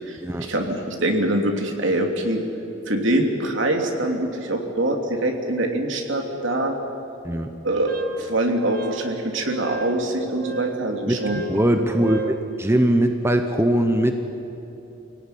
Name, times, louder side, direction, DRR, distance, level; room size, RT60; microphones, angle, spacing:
voice 1, 0.1-2.4 2.9-6.7 7.6-11.4, right 1 dB, 65° right, 3 dB, 2.9 m, -24 dB
Wind instrument woodwind instrument, 7.9-12.4, right 6 dB, 45° right, 1.6 m, -36 dB
voice 2, 11.1-14.1, right 1 dB, 10° right, 6 dB, 0.9 m, -21 dB
24.5 x 17.0 x 10.0 m, 3.0 s
head